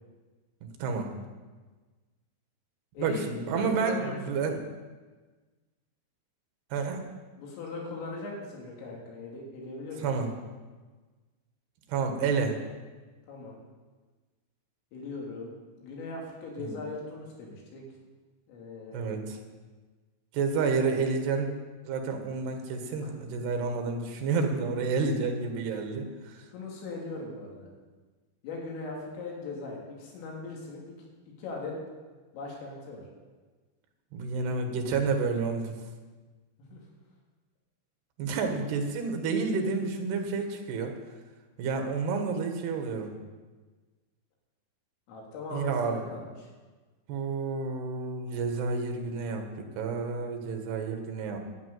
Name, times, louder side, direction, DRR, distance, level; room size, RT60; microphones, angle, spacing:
voice 1, 0.6-1.1 3.0-4.6 6.7-7.1 10.0-10.3 11.9-12.6 16.6-16.8 18.9-19.4 20.3-21.5 21.8-26.5 34.1-35.8 38.2-41.0 41.6-43.1 45.5-46.1 47.1-51.4, right 4 dB, 65° right, 4 dB, 3.3 m, -30 dB
voice 2, 3.0-4.2 7.4-10.1 13.3-13.6 14.9-15.5 15.8-17.8 18.5-19.2 23.0-23.2 26.5-27.7 28.4-31.0 31.4-31.7 32.3-33.0 36.6-36.8 45.1-46.3, left 3 dB, 85° left, -2 dB, 5.6 m, -39 dB
11.5 x 9.8 x 9.4 m, 1.3 s
omnidirectional pair, 5.7 m